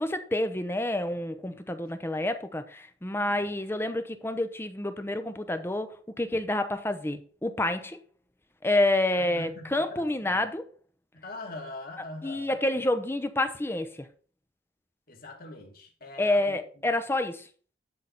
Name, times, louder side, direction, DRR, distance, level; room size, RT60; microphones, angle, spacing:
voice 1, 0.0-5.9 6.2-8.0 8.6-10.6 12.2-14.1 16.2-17.4, left 1 dB, 15° left, 0.7 m, -28 dB
voice 2, 9.2-10.4 11.1-12.6 15.1-16.9, left 2 dB, 55° left, 2.5 m, -43 dB
11.5 x 4.0 x 5.9 m
head